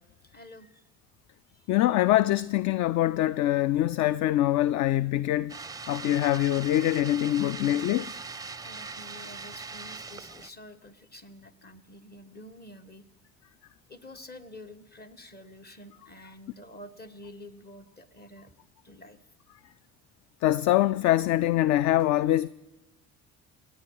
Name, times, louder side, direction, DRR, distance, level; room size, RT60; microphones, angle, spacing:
voice 1, 0.2-0.8 1.5-1.6 8.6-13.0 13.9-18.5 18.8-19.2, left 1 dB, 25° left, 1.5 m, -48 dB
voice 2, 1.7-5.6 5.9-8.1 20.4-22.5, left 14 dB, 45° left, 0.4 m, -24 dB
sound 1, 5.5-10.5, right 4 dB, 10° right, 0.6 m, -40 dB
28.0 x 9.4 x 4.8 m
hypercardioid pair, 55°, 42 cm